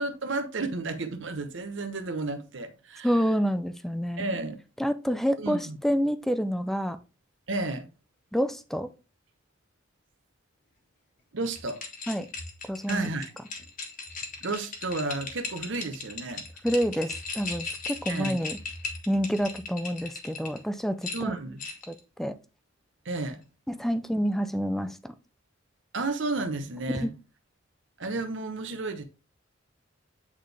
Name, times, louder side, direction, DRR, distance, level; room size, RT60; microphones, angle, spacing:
voice 1, 0.0-3.1 4.2-4.6 5.4-5.8 7.5-7.9 11.3-11.8 12.9-13.3 14.4-16.4 18.1-18.4 21.1-21.6 23.0-23.4 25.9-27.1 28.0-29.0, right 2 dB, 65° right, 0.9 m, -32 dB
voice 2, 3.0-4.3 4.8-7.0 8.3-8.9 12.1-12.3 12.7-13.1 16.6-18.6 19.1-21.3 21.9-22.4 23.7-25.2 26.9-27.1, equal, ahead, 0.4 m, -28 dB
sound 1, 11.4-20.6 21.0-22.0, left 4 dB, 40° left, 1.5 m, -38 dB
8.5 x 4.1 x 3.4 m
head